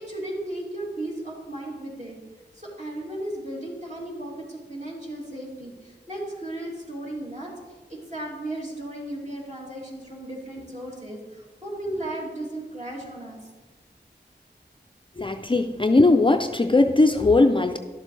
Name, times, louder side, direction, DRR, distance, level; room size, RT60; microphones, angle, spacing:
voice 1, 0.0-2.2 2.5-7.5 7.9-13.4, right 1 dB, 40° right, -4 dB, 2.9 m, -35 dB
voice 2, 15.2-17.8, left 2 dB, 30° left, 6 dB, 0.4 m, -19 dB
12.0 x 7.4 x 3.2 m, 1.3 s
wide cardioid pair, 50°, 19 cm